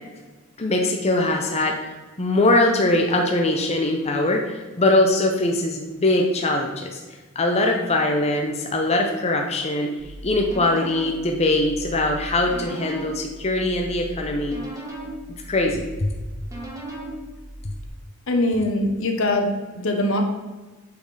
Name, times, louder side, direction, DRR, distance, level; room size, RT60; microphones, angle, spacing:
voice 1, 0.6-7.0 7.4-9.9 10.2-14.6 15.3-16.1, left 2 dB, 30° left, 1 dB, 0.7 m, -22 dB
sound 1, 10.0-17.9, right 1 dB, 15° right, 1.6 m, -37 dB
voice 2, 18.3-20.2, left 1 dB, 65° left, 4 dB, 1.1 m, -22 dB
8.1 x 4.5 x 4.8 m, 1.3 s
head